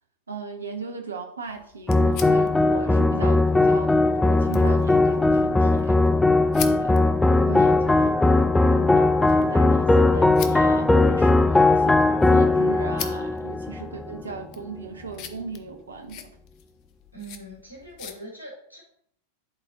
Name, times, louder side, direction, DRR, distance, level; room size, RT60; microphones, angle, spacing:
voice 1, 0.3-6.0 6.6-7.0 7.5-8.1 8.7-12.0 12.3-16.3, right 4 dB, 75° right, 5 dB, 1.0 m, -37 dB
sound 1, 1.5-18.2, left 9 dB, 40° left, 0.7 m, -44 dB
sound 2, 1.9-14.4, left 2 dB, 5° left, 0.3 m, -19 dB
voice 2, 7.4-7.7 17.1-18.8, right 1 dB, 80° left, -2 dB, 3.1 m, -42 dB
11.0 x 4.1 x 2.9 m, 0.65 s
figure-of-eight pair, 90°, 0 cm